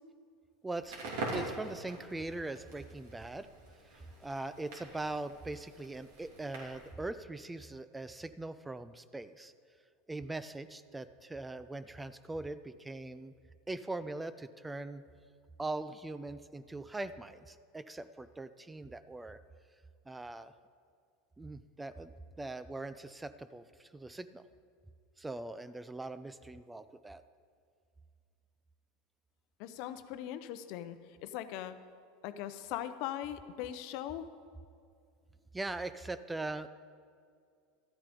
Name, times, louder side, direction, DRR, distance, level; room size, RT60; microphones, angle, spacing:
voice 1, 0.6-1.0 1.3-3.5 3.9-9.5 10.1-13.3 13.7-15.1 15.6-19.4 20.1-20.5 21.4-24.4 25.2-27.2 35.5-36.7, right 2 dB, 10° right, 13 dB, 0.4 m, -41 dB
Crackle, 0.8-6.9, right 2 dB, 75° right, 3.1 m, -44 dB
voice 2, 29.6-31.8 32.2-34.3, left 11 dB, 60° left, 11 dB, 0.7 m, -40 dB
13.0 x 8.9 x 5.2 m, 2.3 s
supercardioid pair, 115°, 0 cm